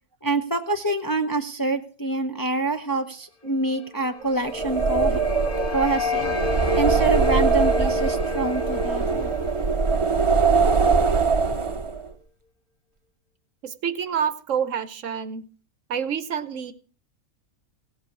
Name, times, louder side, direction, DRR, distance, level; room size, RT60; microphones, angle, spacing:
voice 1, 0.2-5.2 5.7-6.3 6.7-9.3, right 2 dB, 15° left, 4 dB, 0.8 m, -26 dB
sound 1, 4.0-11.0, left 4 dB, 40° left, 1.4 m, -31 dB
sound 2, 4.5-12.1, right 4 dB, 25° right, 0.8 m, -22 dB
voice 2, 13.6-15.4 15.9-16.7, right 7 dB, 60° right, 14 dB, 1.1 m, -27 dB
17.0 x 8.1 x 6.0 m, 0.40 s
omnidirectional pair, 1.6 m